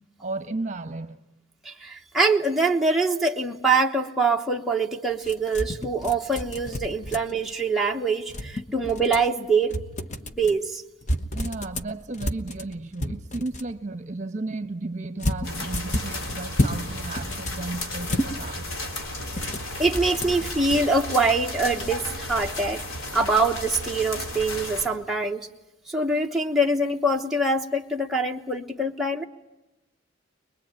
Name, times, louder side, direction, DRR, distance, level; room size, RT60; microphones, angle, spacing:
voice 1, 0.2-1.2 11.3-18.7 19.4-19.5, right 2 dB, 35° right, 1.2 m, -34 dB
voice 2, 1.6-9.8 10.3-10.8 19.8-22.8 23.1-25.5 25.9-29.2, right 3 dB, ahead, 1.1 m, -24 dB
sound 1, 5.2-7.5 8.3-9.3 9.7-10.6 11.0-13.7 15.2-16.8 17.1-18.3 19.3-20.8, left 1 dB, 35° left, 1.1 m, -30 dB
sound 2, 15.4-24.9, left 1 dB, 90° left, 3.5 m, -34 dB
23.0 x 22.0 x 9.0 m
head